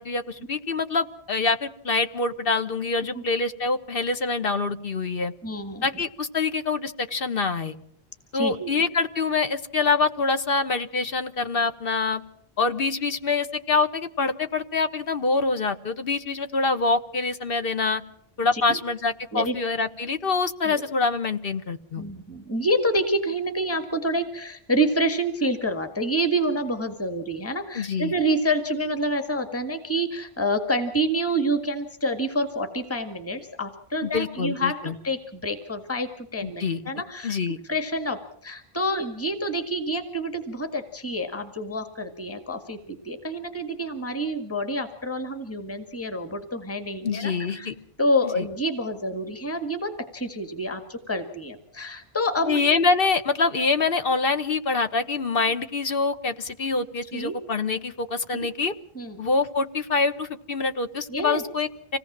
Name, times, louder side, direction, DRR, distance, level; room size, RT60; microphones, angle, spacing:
voice 1, 0.0-5.3 5.8-7.7 8.3-12.2 12.6-18.0 18.4-22.0 27.7-28.1 34.0-34.9 36.4-36.8 37.2-37.6 47.0-47.8 48.4-48.5 52.5-58.7 59.2-62.0, left 4 dB, 65° left, 9 dB, 1.4 m, -25 dB
voice 2, 5.4-5.9 8.3-8.9 18.5-18.8 19.3-19.5 20.7-20.8 22.0-37.4 37.7-47.7 48.0-52.9 57.1-57.4 58.3-58.5 59.0-59.2 61.1-61.4, equal, 15° left, 7 dB, 1.8 m, -28 dB
26.0 x 18.0 x 7.4 m, 0.65 s
omnidirectional pair, 1.0 m